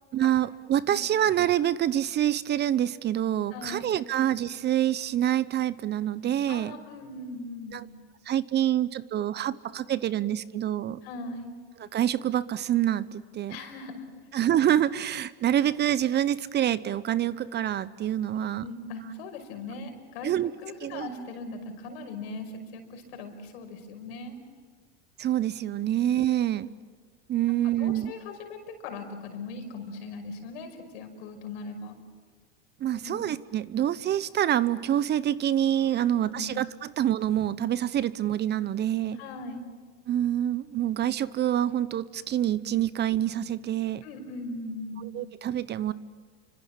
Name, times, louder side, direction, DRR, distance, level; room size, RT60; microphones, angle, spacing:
voice 1, 0.1-6.8 7.7-7.9 8.3-11.0 11.9-13.6 14.3-18.6 20.2-20.5 20.8-21.1 25.2-26.7 27.3-28.1 32.8-39.2 40.1-44.0 45.1-45.9, right 11 dB, 30° right, 17 dB, 0.8 m, -26 dB
voice 2, 3.5-3.9 6.5-7.8 11.0-11.5 13.5-14.1 18.4-20.3 20.6-24.4 26.0-26.3 27.8-32.0 32.9-33.2 36.0-36.5 39.1-39.7 44.0-45.0, left 3 dB, 70° left, 6 dB, 5.5 m, -40 dB
29.5 x 25.0 x 7.4 m, 1.5 s
hypercardioid pair, 105°, 32 cm